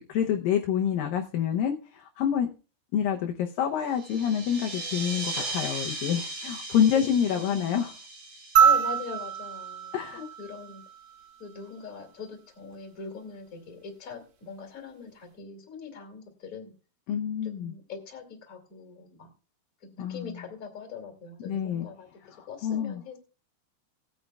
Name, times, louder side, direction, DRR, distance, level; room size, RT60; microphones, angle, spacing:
voice 1, 0.1-2.5 2.9-7.9 9.9-10.3 17.1-17.7 20.0-20.3 21.5-21.9 22.4-23.0, left 8 dB, 75° left, 3 dB, 2.2 m, -27 dB
sound 1, 3.9-10.0, right 2 dB, 45° right, 3.4 m, -38 dB
voice 2, 6.9-7.8 8.6-9.9 10.4-10.8 11.4-16.8 17.4-19.3 19.8-23.2, left 5 dB, 25° left, 2 dB, 2.3 m, -42 dB
sound 2, 8.6-11.1 12.7-12.8, right 8 dB, 75° right, 3.7 m, -25 dB
19.0 x 9.3 x 2.3 m, 0.35 s
omnidirectional pair, 4.8 m